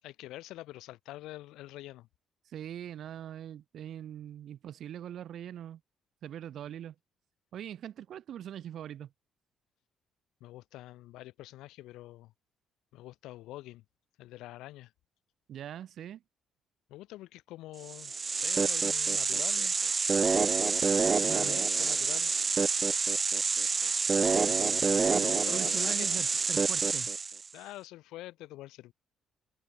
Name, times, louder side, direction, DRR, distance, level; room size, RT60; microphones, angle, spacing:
voice 1, 0.0-2.1 10.4-12.3 12.9-13.8 14.2-14.9 16.9-19.8 21.1-22.3 24.2-26.1 27.5-28.9, left 16 dB, 90° left, 5.6 m, -46 dB
voice 2, 2.5-5.8 6.2-6.9 7.5-9.1 15.5-16.2 21.3-21.6 25.1-27.1, right 10 dB, 60° right, 2.9 m, -42 dB
sound 1, 17.9-27.5, right 4 dB, 30° right, 0.9 m, -27 dB
cardioid pair, 110°, 0 cm